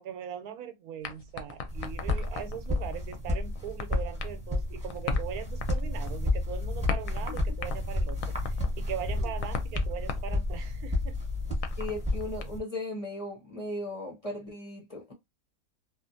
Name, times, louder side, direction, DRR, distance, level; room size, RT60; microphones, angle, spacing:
voice 1, 0.0-11.2, right 9 dB, 90° right, 1.1 m, -40 dB
sound 1, 1.0-12.4, left 5 dB, 70° left, 0.9 m, -40 dB
sound 2, 1.7-12.6, left 1 dB, 5° right, 0.9 m, -32 dB
sound 3, 5.9-11.6, left 8 dB, 65° right, 0.3 m, -40 dB
voice 2, 11.8-15.1, left 1 dB, 35° left, 0.6 m, -37 dB
2.7 x 2.4 x 2.5 m
omnidirectional pair, 1.5 m